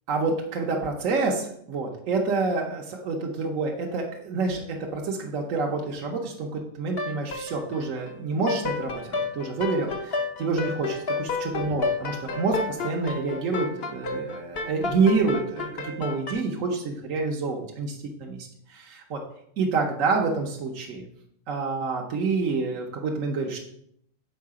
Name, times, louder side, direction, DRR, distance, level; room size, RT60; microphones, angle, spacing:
voice 1, 0.1-19.2 19.6-21.0 21.5-23.6, right 4 dB, 65° right, 0 dB, 1.3 m, -28 dB
sound 1, 7.0-8.2 8.5-16.3, left 3 dB, 50° left, 1.0 m, -31 dB
6.6 x 4.8 x 4.8 m, 0.69 s
omnidirectional pair, 1.5 m